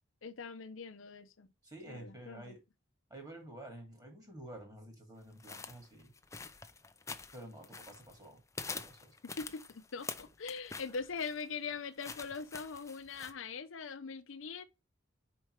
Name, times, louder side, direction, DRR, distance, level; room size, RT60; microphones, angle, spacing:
voice 1, 0.2-1.5 1.9-2.5 9.4-14.6, left 5 dB, 75° left, 0.6 m, -42 dB
voice 2, 1.6-2.6 3.1-6.1 7.3-8.4 8.9-9.1, right 1 dB, 20° right, 2.4 m, -50 dB
sound 1, 5.4-8.2 8.5-13.3, left 4 dB, 15° left, 0.5 m, -46 dB
5.2 x 4.5 x 4.5 m
head